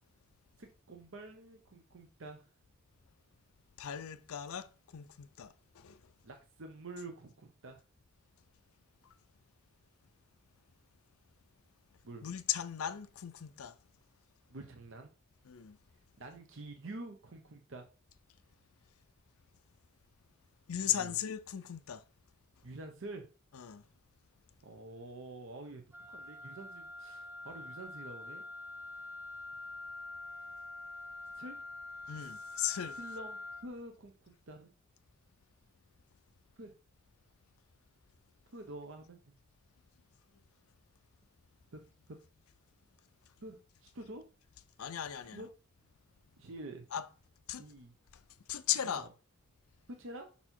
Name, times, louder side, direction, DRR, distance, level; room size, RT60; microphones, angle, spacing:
voice 1, 0.6-2.5 6.2-7.8 12.0-12.3 14.5-15.1 16.2-17.8 20.9-21.2 22.6-23.3 24.6-25.8 26.1-28.4 31.3-31.6 32.9-34.7 36.6-36.7 38.5-39.3 41.7-41.8 43.4-44.2 45.3-45.5 46.4-46.9 47.6-47.9 48.8-49.1 50.0-50.3, right 2 dB, 60° right, 0.8 m, -47 dB
voice 2, 3.8-6.0 12.2-13.8 15.5-15.8 20.7-22.0 23.5-23.8 32.1-33.0 44.8-45.4 46.9-47.1 47.5-47.6 48.5-49.1, left 10 dB, 85° left, 0.5 m, -37 dB
Wind instrument woodwind instrument, 25.9-33.7, left 2 dB, 10° right, 0.6 m, -46 dB
5.6 x 4.2 x 4.4 m
head